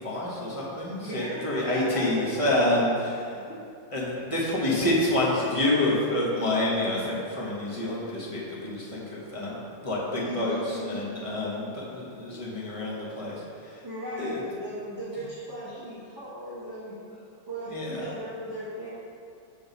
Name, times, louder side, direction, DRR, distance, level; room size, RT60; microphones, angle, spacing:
voice 1, 0.0-3.4 3.9-13.8 14.2-14.4 17.7-18.1, left 1 dB, 25° left, -6 dB, 0.9 m, -28 dB
voice 2, 1.0-2.7 3.5-3.6 10.2-11.0 12.5-12.7 13.8-16.9 17.5-18.9, equal, 15° right, -11 dB, 0.8 m, -37 dB
6.2 x 3.6 x 6.0 m, 2.4 s
omnidirectional pair, 2.0 m